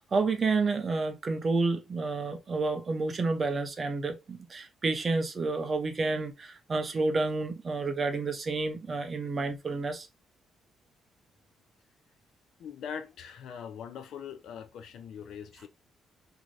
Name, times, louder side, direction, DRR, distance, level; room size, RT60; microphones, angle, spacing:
voice 1, 0.0-10.1, right 3 dB, 25° right, 0.5 m, -30 dB
voice 2, 12.6-15.7, left 7 dB, 60° left, 0.4 m, -42 dB
2.6 x 2.5 x 3.0 m
cardioid pair, 160°, 0 cm